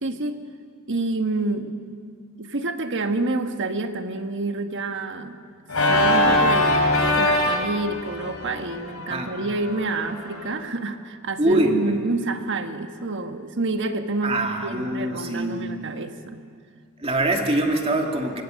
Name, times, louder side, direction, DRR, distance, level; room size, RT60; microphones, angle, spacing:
voice 1, 0.0-0.4 0.9-1.8 2.4-5.4 5.8-16.4, right 2 dB, 60° right, 7 dB, 1.4 m, -28 dB
Organ, 5.7-10.5, left 1 dB, 85° left, 3.6 m, -23 dB
voice 2, 11.4-11.9 14.2-15.6 17.0-18.4, right 1 dB, 25° right, 2 dB, 2.3 m, -23 dB
25.0 x 24.0 x 6.4 m, 2.2 s
head